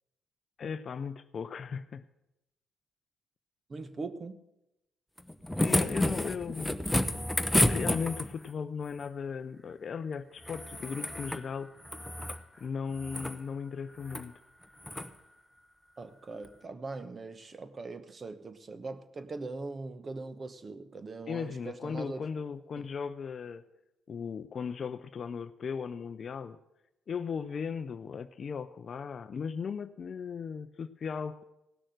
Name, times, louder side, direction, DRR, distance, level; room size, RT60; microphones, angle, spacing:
voice 1, 0.6-2.0 5.6-7.0 7.7-11.7 12.6-14.4 21.3-23.7 24.1-26.6 27.1-31.4, left 6 dB, 50° left, 0.5 m, -37 dB
voice 2, 3.7-4.4 16.0-22.3, right 3 dB, 35° right, 1.0 m, -41 dB
sound 1, 5.2-8.5 10.4-11.4 11.8-12.4 12.9-13.4 14.0-14.3 14.8-15.1 16.4-16.5, left 1 dB, 5° left, 0.8 m, -30 dB
17.0 x 6.4 x 7.8 m
cardioid pair, 85°, 0 cm